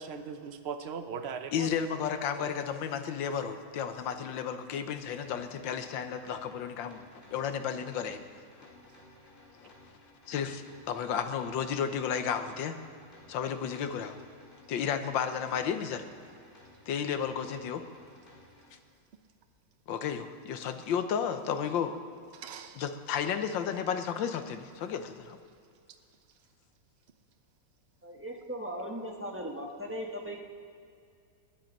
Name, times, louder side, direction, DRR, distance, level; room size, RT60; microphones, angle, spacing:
voice 1, 0.0-1.7 2.4-2.5 22.3-22.8, right 6 dB, 85° right, 8 dB, 0.5 m, -39 dB
voice 2, 1.5-7.0 7.3-8.3 9.6-9.7 10.3-12.8 13.3-14.2 14.7-16.1 16.9-17.8 19.9-22.0 22.8-25.4, left 7 dB, 70° left, 8 dB, 1.6 m, -33 dB
sound 1, 5.0-18.7, left 1 dB, 25° left, 4.7 m, -57 dB
voice 3, 28.0-30.4, equal, 10° right, 0 dB, 1.1 m, -38 dB
20.5 x 10.5 x 5.4 m, 2.3 s
omnidirectional pair, 2.2 m